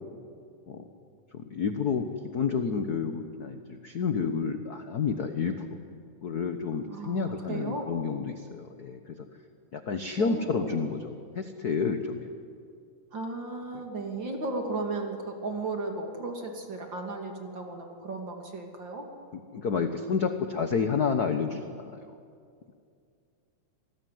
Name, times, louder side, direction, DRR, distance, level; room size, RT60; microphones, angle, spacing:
voice 1, 1.3-2.1 2.3-5.7 6.2-9.3 9.7-12.3 13.7-13.8 19.3-22.2, left 5 dB, 65° left, 7 dB, 0.9 m, -30 dB
voice 2, 6.9-7.9 10.2-10.7 13.1-19.1, right 2 dB, 40° right, 2 dB, 3.2 m, -35 dB
27.5 x 19.5 x 9.5 m, 2.3 s
omnidirectional pair, 3.4 m